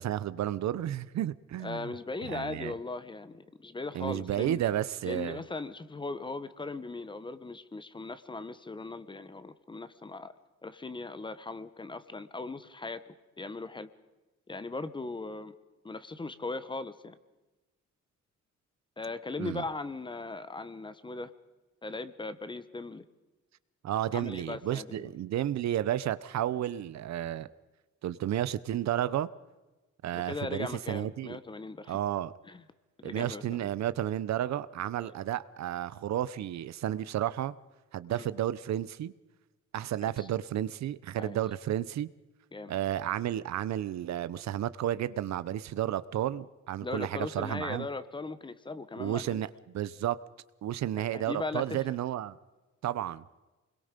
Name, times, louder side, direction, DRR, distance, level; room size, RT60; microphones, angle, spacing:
voice 1, 0.0-1.9 2.2-2.7 3.9-5.4 19.4-19.6 23.8-27.5 28.0-29.3 30.0-31.4 31.9-32.3 33.0-37.6 37.9-39.1 39.7-42.1 42.7-47.9 49.0-50.2 50.6-52.4 52.8-53.2, right 12 dB, 65° right, 17 dB, 0.8 m, -32 dB
voice 2, 1.6-4.6 5.0-10.3 10.6-13.9 14.5-15.5 15.8-17.2 19.0-21.3 21.8-23.0 24.1-25.1 30.1-32.0 32.5-32.6 33.0-33.4 35.0-35.1 38.1-38.3 40.0-40.3 41.2-41.4 42.5-42.7 46.8-49.4 51.0-52.0, left 3 dB, 15° left, 13 dB, 1.0 m, -39 dB
28.5 x 22.0 x 5.2 m, 1.1 s
cardioid pair, 175°, 29 cm